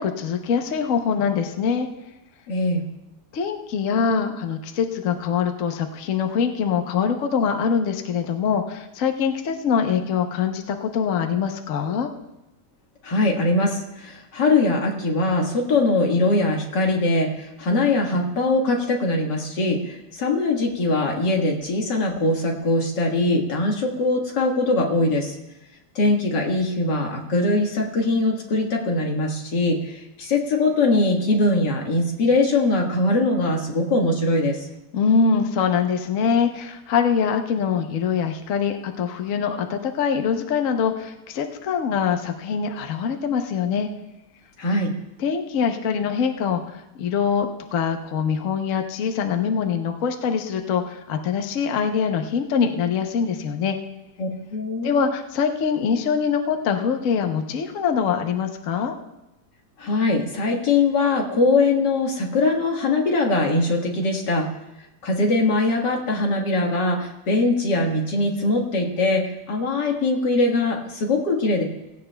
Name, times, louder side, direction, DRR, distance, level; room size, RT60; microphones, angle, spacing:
voice 1, 0.0-1.9 3.3-12.1 34.9-43.9 45.2-53.8 54.8-58.9, left 6 dB, 55° left, 5 dB, 1.1 m, -23 dB
voice 2, 2.5-2.8 13.0-25.4 26.0-34.7 44.6-44.9 54.2-54.9 59.8-64.5 65.0-71.6, left 2 dB, 90° left, 1 dB, 2.3 m, -22 dB
16.5 x 16.5 x 2.2 m, 0.95 s
omnidirectional pair, 1.8 m